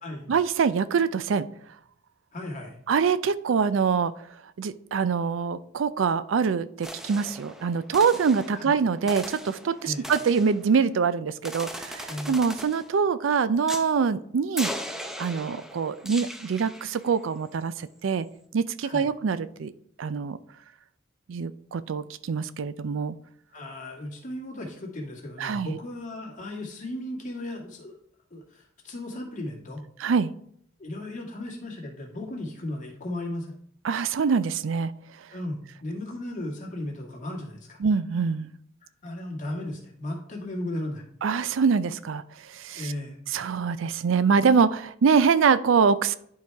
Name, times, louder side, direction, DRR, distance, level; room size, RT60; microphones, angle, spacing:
voice 1, 0.3-1.5 2.9-4.1 4.6-14.7 15.2-18.3 18.5-19.7 20.0-20.4 21.3-23.2 25.4-25.8 30.0-30.3 33.8-34.9 37.8-38.5 41.2-42.9 43.3-46.2, right 6 dB, 75° right, 15 dB, 0.4 m, -24 dB
voice 2, 2.3-2.8 8.5-8.7 9.8-10.1 12.1-12.3 18.8-19.1 23.5-27.9 28.3-29.8 30.8-33.5 35.3-37.8 39.0-41.0 42.7-43.2, left 1 dB, 40° left, -1 dB, 2.0 m, -35 dB
sound 1, 6.8-11.0 11.4-13.0 13.7-13.9 14.6-17.1, equal, ahead, 0.6 m, -39 dB
11.0 x 4.8 x 3.4 m, 0.69 s
head